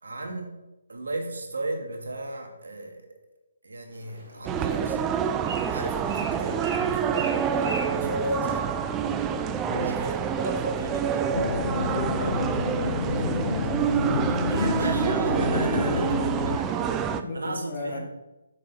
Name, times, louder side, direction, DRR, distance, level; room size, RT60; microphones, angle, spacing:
voice 1, 0.0-0.5 0.9-3.1 3.6-5.0 5.6-7.3 7.7-8.8 9.7-11.3 14.3-16.0 16.4-17.1 17.3-18.0, right 1 dB, 75° right, 2 dB, 1.8 m, -34 dB
Bird, 3.9-9.1, right 2 dB, 35° right, 2.5 m, -41 dB
sound 1, 4.5-17.2, right 7 dB, 15° right, 0.4 m, -27 dB
voice 2, 9.6-10.0 11.6-13.5 14.2-14.3 15.4-16.0 16.8-18.0, left 2 dB, 25° left, -2 dB, 2.0 m, -35 dB
sound 2, 11.3-16.6, left 4 dB, 65° left, 0.4 m, -29 dB
7.7 x 6.5 x 4.2 m, 0.99 s
figure-of-eight pair, 145°, 0 cm